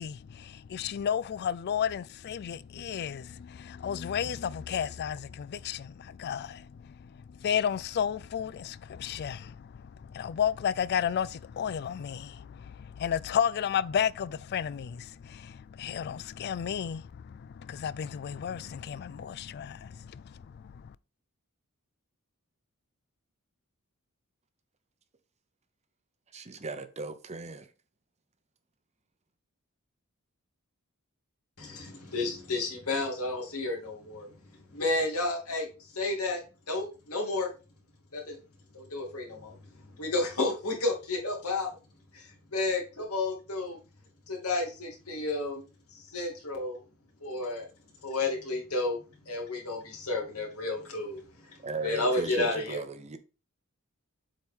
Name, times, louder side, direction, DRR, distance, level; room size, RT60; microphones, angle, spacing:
voice 1, 0.0-21.0, left 8 dB, 50° left, 0.3 m, -33 dB
voice 2, 26.3-27.7 51.6-53.2, right 3 dB, 30° right, 0.7 m, -37 dB
voice 3, 31.6-34.3 34.7-35.7 35.9-36.4 36.7-37.5 38.1-38.4 38.7-39.5 40.0-41.7 42.1-42.3 42.5-43.8 44.3-45.6 46.1-46.8 47.2-47.7 48.0-49.0 49.3-51.2 51.8-52.8, left 2 dB, 85° left, 2.5 m, -31 dB
7.7 x 4.4 x 3.6 m
head